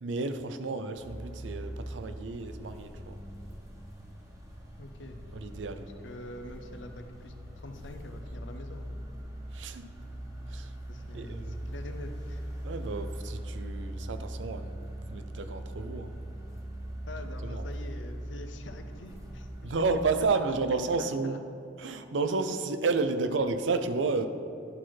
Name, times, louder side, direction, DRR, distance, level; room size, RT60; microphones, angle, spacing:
voice 1, 0.0-3.2 5.3-5.9 9.5-9.9 10.5-10.7 11.1-11.7 12.6-14.7 15.1-16.1 17.4-17.6 19.6-21.4 21.8-24.3, right 3 dB, 85° right, 10 dB, 0.5 m, -31 dB
sound 1, 1.0-20.2, right 1 dB, 20° right, 1.2 m, -41 dB
voice 2, 4.8-5.2 6.0-8.9 10.9-12.5 17.1-19.7 20.0-21.4, left 1 dB, 85° left, 6 dB, 0.7 m, -45 dB
11.0 x 4.6 x 4.4 m, 2.7 s
head